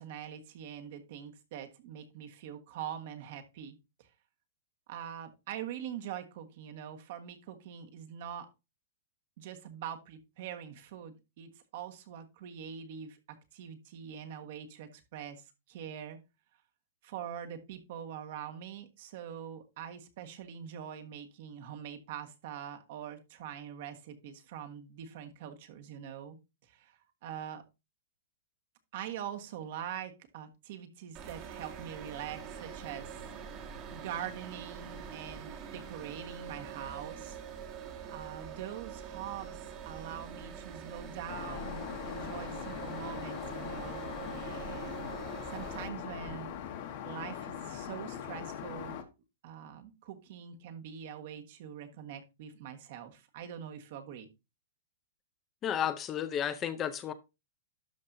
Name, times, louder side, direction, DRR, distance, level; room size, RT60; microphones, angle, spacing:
voice 1, 0.0-4.1 4.9-8.5 9.4-16.2 17.0-26.4 26.7-27.6 28.9-33.2 33.9-37.4 38.1-39.6 39.8-45.1 45.4-46.5 47.0-49.0 49.4-54.3, right 9 dB, 50° right, 1.4 m, -44 dB
sound 1, 31.1-45.9, right 7 dB, 30° right, 1.3 m, -44 dB
Aircraft, 41.3-49.0, left 9 dB, 45° left, 1.3 m, -41 dB
voice 2, 55.6-57.1, left 9 dB, 20° left, 0.5 m, -32 dB
12.0 x 5.4 x 2.7 m
hypercardioid pair, 155°, 0 cm